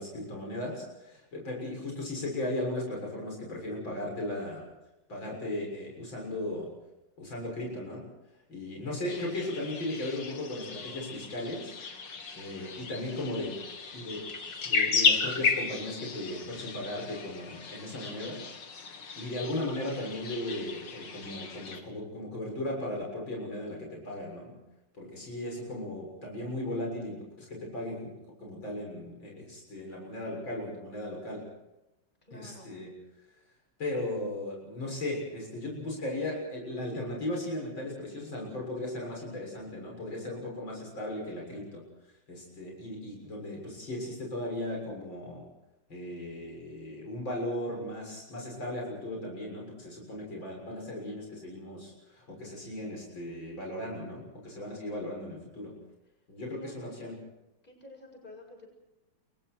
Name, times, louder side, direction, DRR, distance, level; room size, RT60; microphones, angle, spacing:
voice 1, 0.0-4.7 5.1-6.7 7.2-8.0 8.5-11.7 12.4-13.6 13.9-14.3 14.7-18.4 18.8-24.6 25.0-28.1 28.4-31.5 32.3-32.9 33.8-41.8 42.3-45.5 45.9-55.8 56.3-57.2, left 1 dB, 90° left, -1 dB, 7.6 m, -37 dB
sound 1, 9.1-21.8, left 5 dB, 75° left, 2.8 m, -34 dB
voice 2, 12.6-14.0 32.2-32.7 56.5-56.8 57.6-58.7, left 1 dB, 25° left, 1 dB, 7.7 m, -52 dB
29.5 x 23.5 x 4.6 m, 0.95 s
omnidirectional pair, 2.0 m